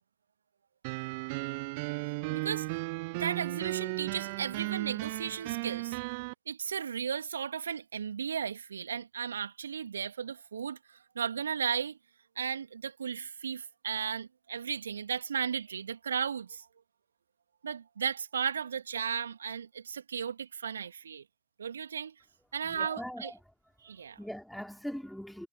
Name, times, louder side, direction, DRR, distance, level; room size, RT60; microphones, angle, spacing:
sound 1, 0.8-6.3, right 28 dB, 50° right, 0.8 m, -35 dB
voice 1, 2.3-2.8 3.1-6.0 6.5-12.0 12.4-16.7 17.6-21.2 21.6-22.1 22.5-23.3 23.8-24.2, right 7 dB, 75° right, 2.9 m, -35 dB
voice 2, 22.7-23.3 24.2-25.5, equal, ahead, 3.2 m, -40 dB
figure-of-eight pair, 80°, 0 cm